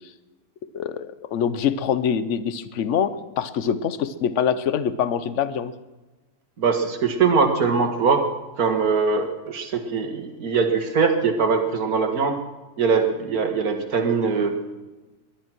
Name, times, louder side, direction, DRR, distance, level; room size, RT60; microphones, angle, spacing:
voice 1, 0.7-5.7, left 8 dB, 55° left, 14 dB, 1.1 m, -24 dB
voice 2, 6.6-8.3 8.6-12.4 12.8-14.6, right 5 dB, 70° right, 6 dB, 2.1 m, -22 dB
20.0 x 11.5 x 6.2 m, 1.2 s
omnidirectional pair, 1.6 m